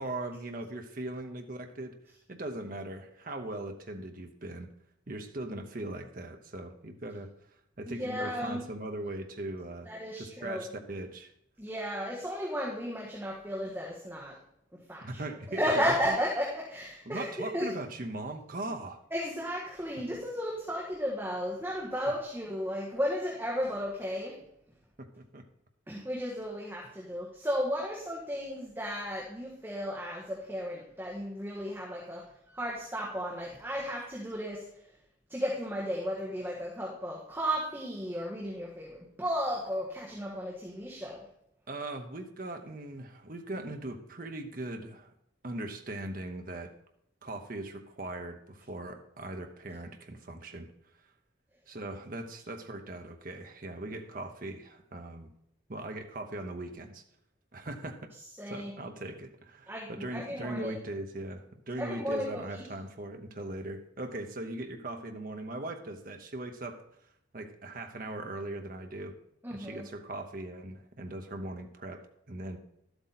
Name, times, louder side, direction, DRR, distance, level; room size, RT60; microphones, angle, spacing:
voice 1, 0.0-2.0 2.3-4.7 5.1-7.3 7.8-9.9 10.2-11.3 15.0-16.2 17.1-19.0 25.0-25.4 41.7-45.1 45.4-46.7 47.2-50.7 51.7-55.3 55.7-57.0 57.5-58.1 58.5-66.8 67.3-69.2 69.5-72.6, right 2 dB, 45° right, 5 dB, 0.9 m, -39 dB
voice 2, 7.9-8.6 9.9-10.6 11.6-14.3 14.9-15.2 15.5-17.7 19.1-24.3 25.9-34.6 35.3-41.2 58.4-58.7 59.7-60.8 61.8-62.3 62.5-62.6 69.4-69.8, equal, 10° right, -3 dB, 1.5 m, -34 dB
12.0 x 8.1 x 4.1 m, 0.74 s
head